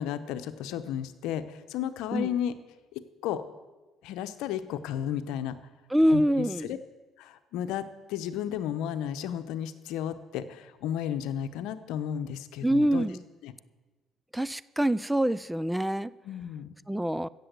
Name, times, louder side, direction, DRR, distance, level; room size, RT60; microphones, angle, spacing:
voice 1, 0.0-2.5 2.9-3.4 4.0-5.5 6.1-6.8 7.2-13.0 13.4-13.5 16.2-16.7, left 10 dB, 80° left, 11 dB, 0.8 m, -33 dB
voice 2, 5.9-6.7 12.6-13.2 14.3-16.1 16.9-17.3, equal, 5° right, 19 dB, 0.4 m, -25 dB
15.5 x 7.0 x 8.1 m, 1.2 s
supercardioid pair, 70°, 0 cm